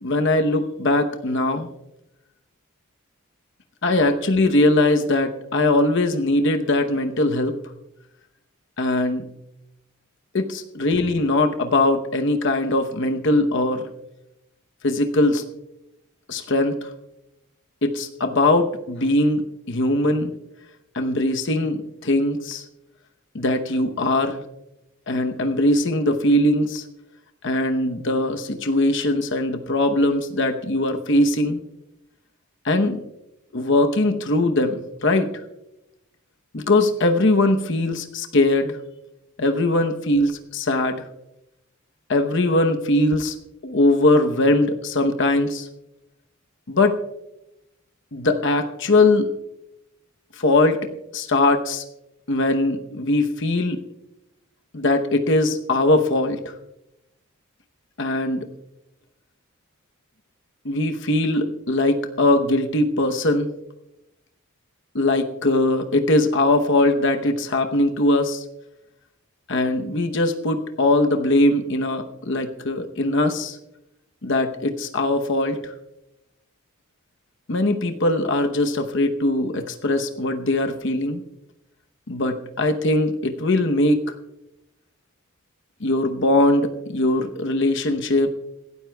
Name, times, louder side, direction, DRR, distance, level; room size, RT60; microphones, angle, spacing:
voice 1, 0.0-1.7 3.8-7.6 8.8-9.2 10.3-13.9 14.8-15.4 16.3-16.9 17.8-20.3 20.9-22.6 23.3-24.4 25.1-26.8 27.4-31.6 32.6-33.0 33.5-35.3 36.5-38.8 39.4-41.0 42.1-43.3 43.6-45.7 46.7-47.0 48.1-49.3 50.4-50.8 51.1-51.8 52.3-53.8 54.7-56.5 58.0-58.5 60.6-63.5 64.9-68.4 69.5-73.6 74.2-75.7 77.5-81.2 82.1-84.1 85.8-88.3, left 2 dB, 60° left, 6 dB, 0.9 m, -21 dB
26.5 x 12.5 x 2.3 m, 0.91 s
head